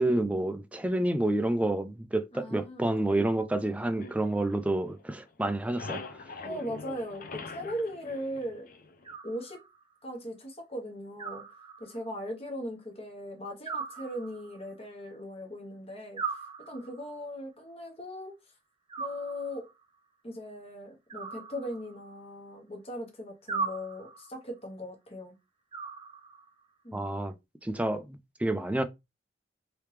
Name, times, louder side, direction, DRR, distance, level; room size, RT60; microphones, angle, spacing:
voice 1, 0.0-6.2 26.9-27.3 27.6-28.8, right 1 dB, 10° right, 0.4 m, -29 dB
voice 2, 2.3-2.9 6.4-8.7 9.2-9.6 10.0-11.4 11.8-16.2 16.7-18.3 19.0-19.7 20.2-25.3 26.8-27.1, equal, 35° left, 1.1 m, -39 dB
sound 1, 4.0-5.1 5.4-9.1, left 3 dB, 50° left, 0.6 m, -43 dB
Animal, 9.0-9.9 11.2-12.2 13.7-14.7 16.2-17.2 18.9-19.8 21.1-22.2 23.5-24.4 25.7-26.6, right 5 dB, 30° right, 0.8 m, -39 dB
3.3 x 2.8 x 3.2 m
head